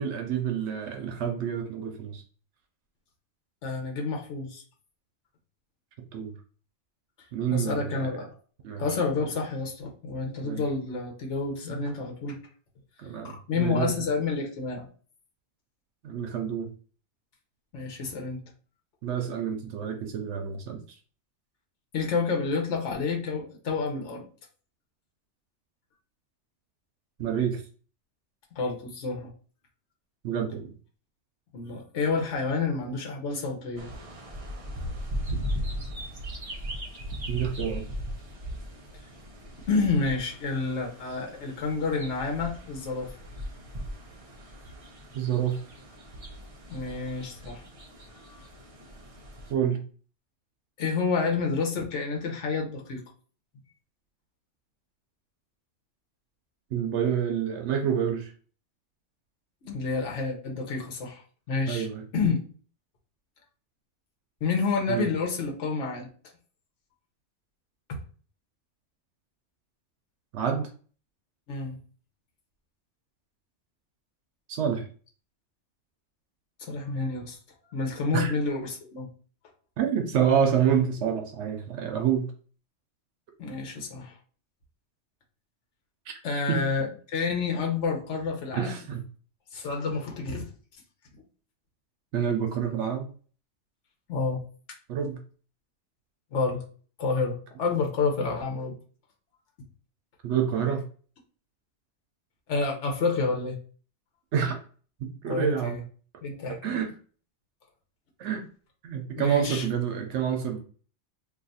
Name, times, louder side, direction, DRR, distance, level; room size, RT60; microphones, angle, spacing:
voice 1, 0.0-2.2 6.1-6.3 7.3-8.2 8.6-8.8 10.4-10.6 11.7-11.8 13.0-14.0 16.0-16.7 19.0-21.0 27.2-27.6 30.2-30.7 37.3-37.9 45.1-45.6 49.5-49.8 56.7-58.3 61.7-62.1 64.9-65.1 70.3-70.7 74.5-74.9 78.1-78.3 79.8-82.3 86.1-86.2 86.5-86.6 88.5-89.0 92.1-93.1 94.9-95.2 100.2-100.9 104.3-104.6 105.0-105.8 106.5-106.9 108.2-108.5 108.8-110.6, right 8 dB, 80° right, 4 dB, 0.9 m, -28 dB
voice 2, 3.6-4.6 7.5-8.3 8.8-12.4 13.2-14.9 17.7-18.4 21.9-24.2 28.5-29.3 31.5-33.9 39.7-43.1 46.7-47.6 48.3-48.4 50.8-53.0 59.6-61.2 61.5-61.9 62.1-62.4 64.4-66.1 71.5-71.7 76.6-77.4 77.7-79.1 83.4-84.1 86.2-88.7 89.5-90.4 94.1-94.4 96.3-96.6 97.0-98.7 102.5-103.5 105.3-105.8 106.2-106.8 109.2-109.6, left 4 dB, 80° left, 1 dB, 1.1 m, -29 dB
sound 1, 33.8-49.5, equal, 40° right, 0.5 m, -38 dB
2.6 x 2.4 x 3.9 m, 0.41 s
omnidirectional pair, 1.2 m